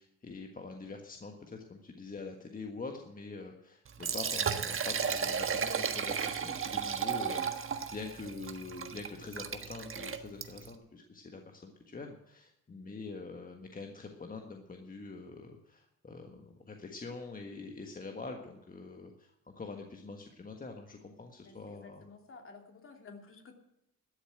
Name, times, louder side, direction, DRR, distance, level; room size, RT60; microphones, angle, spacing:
voice 1, 0.0-22.0, left 3 dB, 30° left, 4 dB, 1.6 m, -45 dB
Liquid, 3.9-10.8, right 7 dB, 45° right, 1.4 m, -34 dB
voice 2, 21.4-23.6, left 4 dB, 45° left, 4 dB, 2.8 m, -52 dB
13.0 x 7.2 x 9.0 m, 0.84 s
cardioid pair, 90°, 30 cm